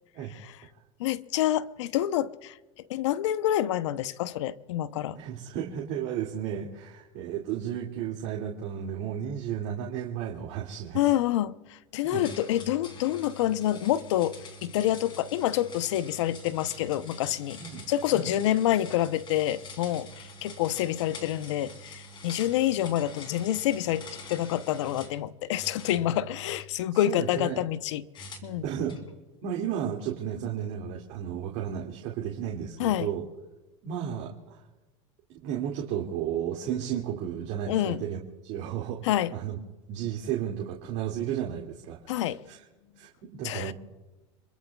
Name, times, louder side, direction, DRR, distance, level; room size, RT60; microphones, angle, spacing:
voice 1, 1.0-2.6 2.9-5.2 10.9-17.6 17.9-28.6 32.8-33.1 37.7-38.0 39.0-39.3 42.1-42.4 43.4-43.7, left 12 dB, 75° left, 0.8 m, -27 dB
voice 2, 5.1-11.1 12.0-12.3 17.6-18.3 26.9-27.6 28.6-29.0 29.4-33.2 33.8-34.6 35.4-39.6 39.9-42.2 42.5-42.6 43.0-43.7, right 9 dB, 60° right, 2.4 m, -33 dB
sound 1, 12.2-25.2 25.5-27.0 28.1-29.1, left 1 dB, 30° left, 3.4 m, -46 dB
27.0 x 22.0 x 2.3 m
hypercardioid pair, 95°, 15 cm